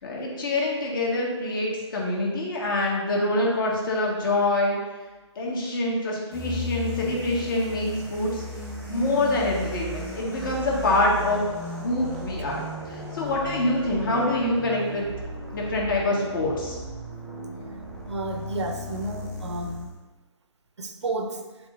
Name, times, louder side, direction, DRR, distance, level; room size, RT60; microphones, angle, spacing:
voice 1, 0.0-4.8 5.4-8.4 8.9-11.4 11.8-15.1 15.5-16.8, left 2 dB, 45° left, -3 dB, 1.8 m, -25 dB
sound 1, 6.3-20.0, equal, ahead, 1.2 m, -36 dB
voice 2, 18.1-19.9 20.8-21.4, right 2 dB, 70° right, 5 dB, 0.8 m, -31 dB
10.5 x 3.9 x 2.6 m, 1.3 s
figure-of-eight pair, 150°, 15 cm